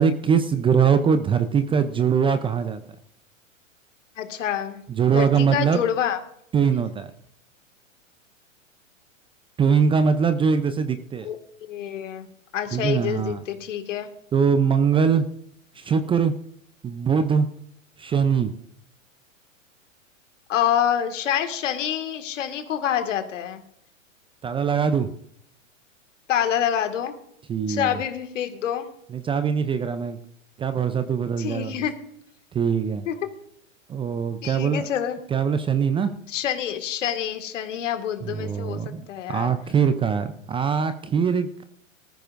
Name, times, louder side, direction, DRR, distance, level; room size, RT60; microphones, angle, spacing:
voice 1, 0.0-2.8 4.9-5.8 6.5-7.1 9.6-11.3 12.7-13.4 14.3-15.3 15.7-16.3 16.8-17.5 18.0-18.5 24.4-25.2 27.5-28.0 29.1-30.2 30.6-31.9 32.5-33.1 33.9-34.9 35.3-36.1 38.2-41.6, right 6 dB, 15° right, 11 dB, 0.5 m, -22 dB
voice 2, 4.2-4.8 5.1-6.2 11.2-12.3 12.5-14.1 20.5-23.6 26.3-27.2 27.7-28.8 31.4-31.9 33.1-33.2 34.4-35.2 36.3-38.8 39.1-39.5, left 9 dB, 70° left, 7 dB, 2.0 m, -27 dB
19.0 x 14.0 x 2.6 m, 0.72 s
hypercardioid pair, 110°, 39 cm